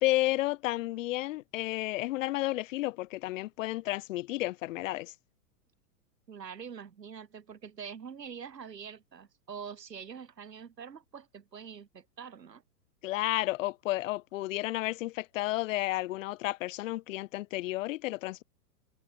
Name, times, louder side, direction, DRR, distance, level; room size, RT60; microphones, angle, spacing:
voice 1, 0.0-5.1 13.0-18.4, left 18 dB, 50° left, 1.1 m, -32 dB
voice 2, 6.3-12.6, right 7 dB, 80° right, 3.4 m, -45 dB
hypercardioid pair, 110°, 48 cm